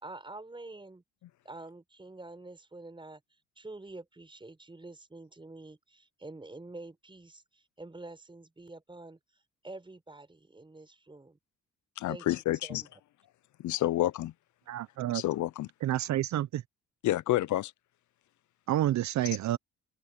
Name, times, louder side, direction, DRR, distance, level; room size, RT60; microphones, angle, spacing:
voice 1, 0.0-1.0 1.4-3.2 3.6-9.2 9.6-11.4 12.1-12.3 12.6-12.9, right 2 dB, 15° right, 4.8 m, -47 dB
voice 2, 12.0-12.8 13.6-14.3 15.1-15.7 17.0-17.7, left 15 dB, 70° left, 0.7 m, -29 dB
voice 3, 14.7-15.2 15.8-16.6 18.7-19.6, right 13 dB, 70° right, 0.7 m, -29 dB
open air
cardioid pair, 90°, 30 cm